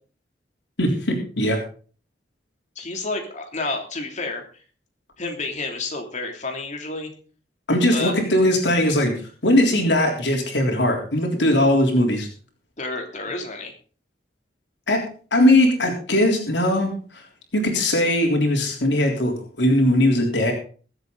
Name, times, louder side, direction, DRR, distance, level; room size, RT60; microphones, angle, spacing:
voice 1, 0.8-1.6 7.7-12.3 14.9-17.2 17.5-19.3 19.6-20.5, left 1 dB, 85° left, 1 dB, 3.6 m, -20 dB
voice 2, 2.7-4.6 5.2-7.1 7.9-8.1 12.8-13.7, left 3 dB, 45° left, 3 dB, 3.0 m, -30 dB
22.5 x 8.1 x 4.0 m, 0.40 s
head